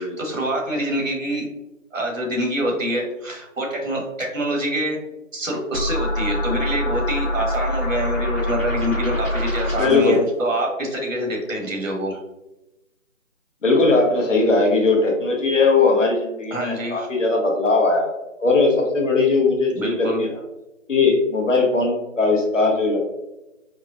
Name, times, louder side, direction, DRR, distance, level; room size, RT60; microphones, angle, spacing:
voice 1, 0.0-1.5 1.9-5.0 5.3-12.2 16.5-17.1 19.7-20.2, equal, 75° right, -1 dB, 1.5 m, -26 dB
sound 1, 5.7-10.1, left 1 dB, 10° left, 0.8 m, -25 dB
voice 2, 9.8-10.2 13.6-18.1 18.4-20.3 20.9-23.0, left 3 dB, 65° left, 1 dB, 1.0 m, -19 dB
4.8 x 2.0 x 2.5 m, 0.95 s
figure-of-eight pair, 160°, 40 cm